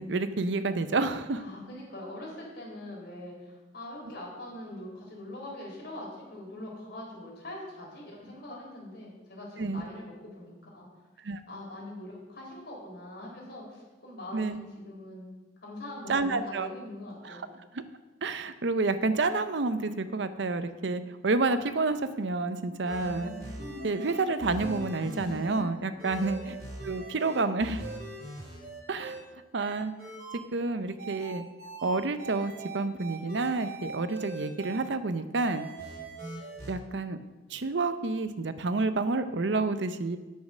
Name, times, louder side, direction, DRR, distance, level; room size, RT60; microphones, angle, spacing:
voice 1, 0.0-1.4 9.6-9.8 11.2-11.4 14.3-14.6 16.1-16.7 17.2-17.4 17.7-17.8 18.2-23.3 23.8-26.6 26.8-27.8 28.9-29.2 29.5-29.9 30.5-31.4 31.8-35.7 36.7-37.2 37.5-40.2, right 3 dB, 70° right, 11 dB, 0.7 m, -29 dB
voice 2, 1.4-11.1 11.5-15.3 15.6-17.4 26.2-26.5, left 1 dB, 60° left, -3 dB, 3.8 m, -43 dB
sound 1, 22.8-25.6 26.0-29.2 29.6-30.4 31.0-34.8 35.4-36.7, right 2 dB, 55° right, 3.2 m, -41 dB
9.3 x 6.5 x 6.2 m, 1.2 s
head